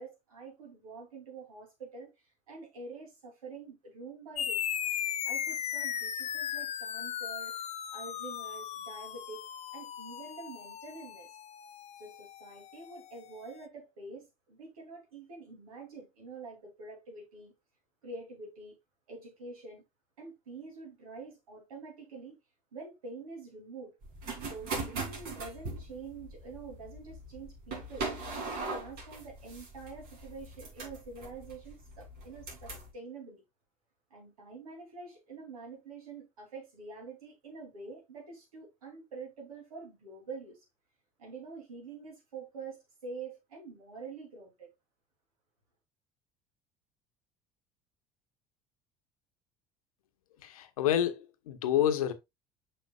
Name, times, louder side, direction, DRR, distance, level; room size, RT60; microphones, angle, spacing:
voice 1, 0.0-2.1 2.5-4.6 5.2-9.4 9.7-11.3 12.0-17.5 18.0-18.8 19.1-19.8 20.2-22.3 22.7-23.9 24.4-28.1 28.4-33.4 34.1-40.6 41.2-44.7, right 4 dB, 90° right, 2.9 m, -46 dB
sound 1, 4.4-13.3, left 9 dB, 40° left, 0.6 m, -37 dB
sound 2, 24.0-32.9, right 3 dB, 60° right, 3.0 m, -40 dB
voice 2, 50.4-52.1, left 10 dB, 85° left, 0.9 m, -28 dB
6.6 x 6.1 x 2.3 m
hypercardioid pair, 70°, 18 cm